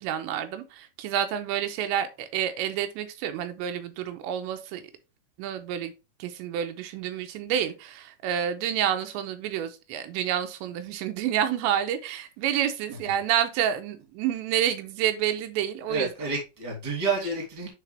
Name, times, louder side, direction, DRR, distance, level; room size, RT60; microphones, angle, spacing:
voice 1, 0.0-4.8 5.4-5.9 6.2-16.1, right 10 dB, 85° right, 2.9 m, -29 dB
voice 2, 15.9-17.7, right 3 dB, 15° right, 1.7 m, -29 dB
9.3 x 4.1 x 3.3 m
omnidirectional pair, 5.2 m